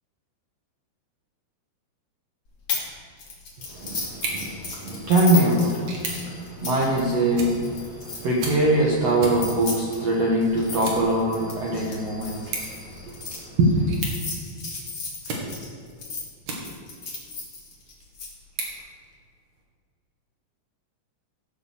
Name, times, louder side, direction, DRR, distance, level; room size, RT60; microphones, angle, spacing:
sound 1, 2.7-2.9 3.2-8.5 9.2-13.4 13.9-16.2 16.6-18.3, left 4 dB, 40° left, 2.9 m, -34 dB
voice 1, 3.7-13.9, right 1 dB, 85° right, -4 dB, 1.4 m, -23 dB
sound 2, 4.1-17.1 17.6-19.6, right 3 dB, 55° right, 2.5 m, -38 dB
16.0 x 5.6 x 6.6 m, 2.1 s
omnidirectional pair, 5.1 m